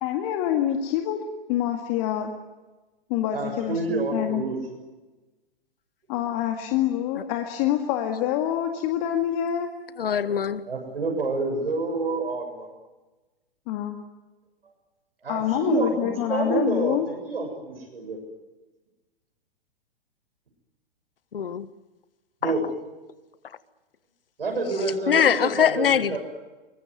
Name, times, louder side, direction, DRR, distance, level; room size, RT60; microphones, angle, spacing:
voice 1, 0.0-1.2 1.5-2.3 3.1-4.4 6.1-9.7 13.7-14.0 15.3-17.1, left 11 dB, 40° left, 2.1 m, -26 dB
voice 2, 3.3-4.6 10.7-12.7 15.2-18.2 22.4-22.6 24.4-26.2, right 3 dB, 75° right, 7.3 m, -28 dB
voice 3, 10.0-10.7 21.3-21.7 22.4-22.6 24.8-26.2, left 8 dB, 70° left, 1.4 m, -23 dB
24.0 x 22.5 x 9.7 m
figure-of-eight pair, 110°, 29 cm